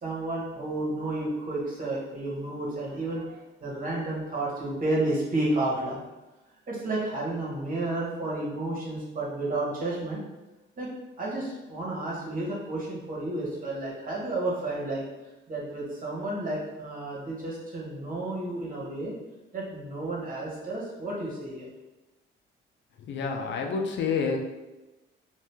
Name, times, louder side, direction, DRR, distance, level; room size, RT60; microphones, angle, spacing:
voice 1, 0.0-6.0 6.7-10.2 10.8-10.9 11.2-19.1 19.5-21.7, right 2 dB, 45° right, -5 dB, 1.3 m, -31 dB
voice 2, 23.0-24.4, left 5 dB, 65° left, 3 dB, 0.5 m, -28 dB
2.7 x 2.5 x 3.4 m, 1.1 s
cardioid pair, 90°, 20 cm